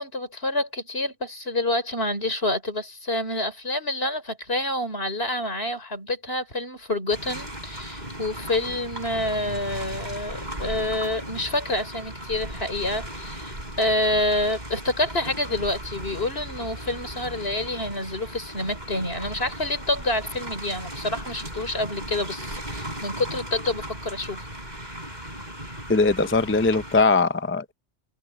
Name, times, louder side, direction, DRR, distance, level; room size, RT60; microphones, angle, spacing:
voice 1, 0.0-24.5, left 1 dB, 65° left, 5.1 m, -28 dB
sound 1, 7.1-27.0, right 1 dB, 40° right, 5.6 m, -37 dB
voice 2, 25.9-27.7, left 3 dB, 15° left, 0.4 m, -20 dB
omnidirectional pair, 1.1 m